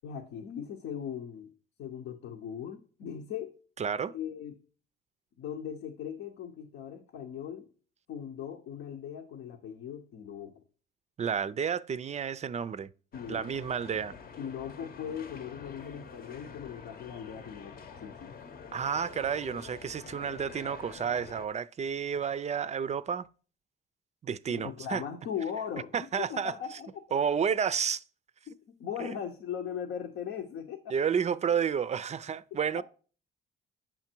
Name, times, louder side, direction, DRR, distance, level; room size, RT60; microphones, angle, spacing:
voice 1, 0.0-1.5 1.8-3.5 4.1-4.6 5.4-7.7 8.1-10.5 13.1-13.4 14.4-18.3 24.5-27.0 28.5-30.9 32.8-32.9, left 8 dB, 80° left, 0.9 m, -39 dB
voice 2, 3.8-4.1 11.2-12.9 13.3-14.1 18.7-23.3 24.2-25.0 25.9-26.5 27.1-28.0 29.0-29.1 30.9-32.8, right 7 dB, 35° right, 0.4 m, -31 dB
sound 1, 13.1-21.5, left 6 dB, 50° left, 0.8 m, -47 dB
9.0 x 5.8 x 4.5 m
cardioid pair, 90°, 20 cm